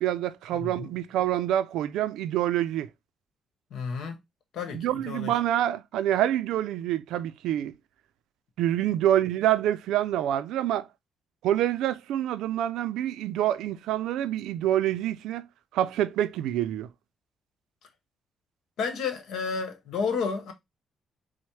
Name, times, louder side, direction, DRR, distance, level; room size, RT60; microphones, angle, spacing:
voice 1, 0.0-2.9 4.7-7.7 8.6-10.9 11.4-15.5 15.7-16.9, right 12 dB, 85° right, 0.4 m, -26 dB
voice 2, 0.5-0.9 3.7-4.2 4.5-5.3 18.8-20.5, left 5 dB, 75° left, 1.1 m, -31 dB
4.2 x 2.1 x 4.5 m
cardioid pair, 90°, 0 cm